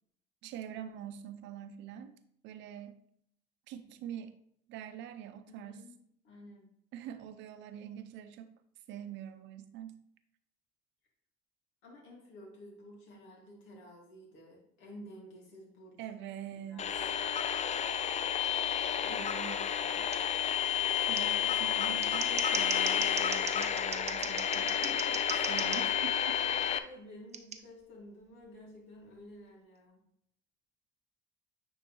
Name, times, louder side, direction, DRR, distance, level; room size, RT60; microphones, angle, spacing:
voice 1, 0.4-2.2 2.4-2.9 3.7-4.3 4.7-5.8 6.9-8.5 8.9-10.0 16.0-16.9 19.1-19.7 21.0-24.7 25.5-26.4, right 10 dB, 70° right, 10 dB, 0.7 m, -44 dB
voice 2, 5.5-5.9 6.2-6.6 11.8-16.0 16.7-17.2 18.9-19.3 19.7-20.1 24.5-25.7 26.5-30.0, left 1 dB, 75° left, -1 dB, 2.0 m, -52 dB
sound 1, 16.8-26.8, left 9 dB, 35° left, 0.5 m, -31 dB
Scissors, 20.1-20.2 21.1-21.2 21.9-25.8 27.3-27.6, right 6 dB, 35° right, 0.7 m, -38 dB
9.2 x 3.6 x 3.0 m, 0.70 s
supercardioid pair, 75°, 20 cm